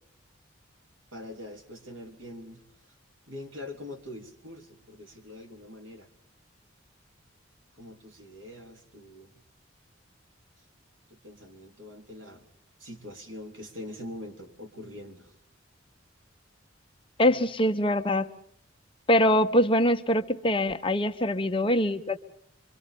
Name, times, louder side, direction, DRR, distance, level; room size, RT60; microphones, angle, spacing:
voice 1, 1.1-2.6 3.3-6.1 7.8-9.4 11.1-12.5 12.8-15.3 17.3-17.5, left 1 dB, 80° right, 4 dB, 3.7 m, -43 dB
voice 2, 17.2-18.3 19.1-22.2, left 1 dB, 25° left, 7 dB, 1.1 m, -23 dB
25.5 x 24.5 x 5.3 m, 0.65 s
head